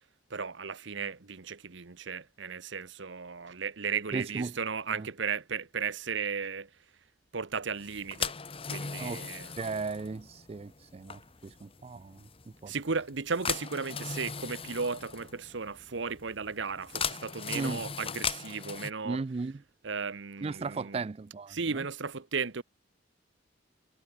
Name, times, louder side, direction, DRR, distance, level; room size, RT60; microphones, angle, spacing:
voice 1, 0.3-6.7 7.3-8.3 8.7-9.5 12.7-19.2 19.8-21.0 21.5-22.6, right 5 dB, 60° right, 1.0 m, -35 dB
voice 2, 4.1-4.6 4.9-5.1 9.0-9.2 9.6-12.7 17.5-17.8 19.0-19.6 20.4-21.9, right 4 dB, 30° right, 0.3 m, -36 dB
sound 1, 7.8-18.9, left 6 dB, 25° left, 1.3 m, -38 dB
head